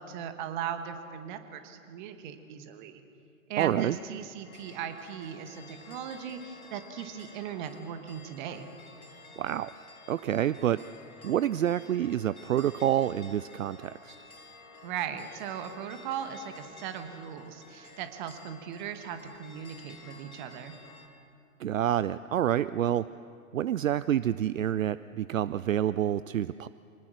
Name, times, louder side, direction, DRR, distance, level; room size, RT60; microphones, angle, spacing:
voice 1, 0.0-3.0 3.5-8.7 14.8-20.7, right 8 dB, 35° right, 9 dB, 1.6 m, -38 dB
voice 2, 3.6-4.0 9.4-9.7 10.1-10.8 11.2-14.2 21.6-23.1 23.5-26.7, right 11 dB, 65° right, 16 dB, 0.5 m, -28 dB
sound 1, 4.4-21.1, left 3 dB, 80° left, 3.4 m, -52 dB
25.0 x 19.0 x 6.4 m, 2.7 s
figure-of-eight pair, 120°, 43 cm